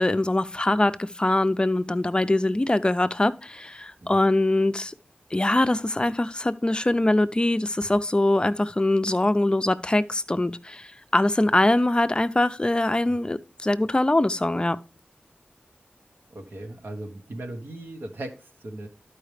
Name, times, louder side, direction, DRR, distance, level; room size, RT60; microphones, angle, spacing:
voice 1, 0.0-4.9 5.3-14.8, left 1 dB, 25° left, 0.5 m, -23 dB
voice 2, 16.3-18.9, right 1 dB, 85° right, 1.3 m, -38 dB
12.0 x 4.8 x 3.3 m
wide cardioid pair, 60°, 4 cm